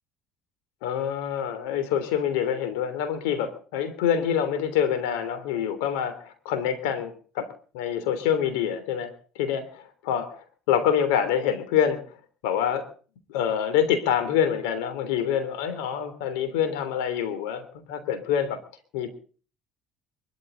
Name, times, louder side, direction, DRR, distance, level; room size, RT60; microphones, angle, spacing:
voice 1, 0.8-7.5 7.7-9.6 10.0-12.2 12.4-12.9 13.3-18.6 18.9-19.1, left 8 dB, 85° left, 10 dB, 3.3 m, -26 dB
23.0 x 13.5 x 4.0 m, 0.41 s
supercardioid pair, 95°, 0 cm